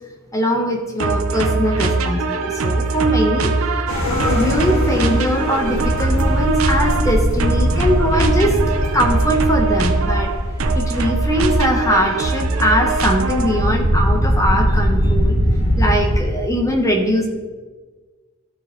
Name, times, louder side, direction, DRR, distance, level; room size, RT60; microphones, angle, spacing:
voice 1, 0.3-8.6 8.9-10.3 10.7-15.4 15.8-17.3, equal, 15° left, 2 dB, 1.0 m, -21 dB
sound 1, 1.0-13.8, right 3 dB, 70° right, 0.7 m, -22 dB
sound 2, 3.9-16.2, equal, 70° left, 1.9 m, -21 dB
12.5 x 4.8 x 3.8 m, 1.3 s
head